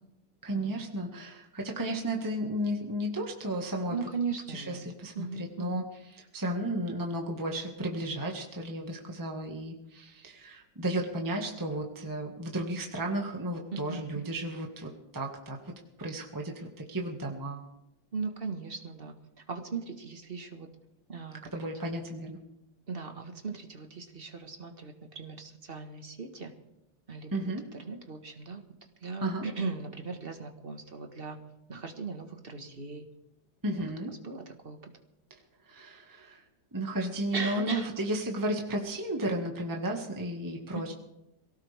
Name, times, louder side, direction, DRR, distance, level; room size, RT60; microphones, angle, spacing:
voice 1, 0.4-4.0 4.5-5.8 6.3-15.6 16.0-17.6 21.5-22.4 27.3-27.6 29.2-29.4 33.6-34.1 35.7-36.4 36.7-40.9, right 1 dB, 10° right, 0 dB, 1.7 m, -33 dB
voice 2, 3.9-4.9 5.1-5.9 13.7-14.0 18.1-19.1 19.5-20.7 21.1-21.7 22.9-26.5 27.1-31.4 31.7-33.1 33.6-33.9 34.2-34.8 37.3-37.9 40.7-40.9, right 4 dB, 30° right, 5 dB, 1.6 m, -38 dB
23.0 x 17.5 x 3.5 m, 0.88 s
omnidirectional pair, 2.0 m